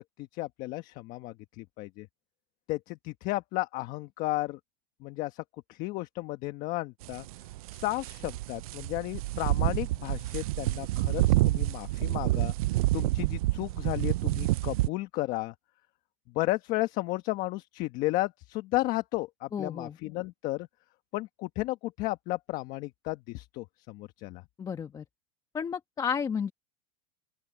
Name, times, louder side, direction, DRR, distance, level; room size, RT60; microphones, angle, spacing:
voice 1, 0.0-2.1 2.7-4.6 5.0-5.4 5.7-7.2 7.7-12.5 12.9-15.5 16.3-20.7 21.1-24.4, left 19 dB, 45° left, 1.4 m, -33 dB
sound 1, 7.0-14.9, right 17 dB, 75° right, 0.4 m, -28 dB
voice 2, 19.5-20.0 24.6-25.0 25.5-26.5, left 7 dB, 20° left, 1.3 m, -32 dB
open air
supercardioid pair, 135°, 19 cm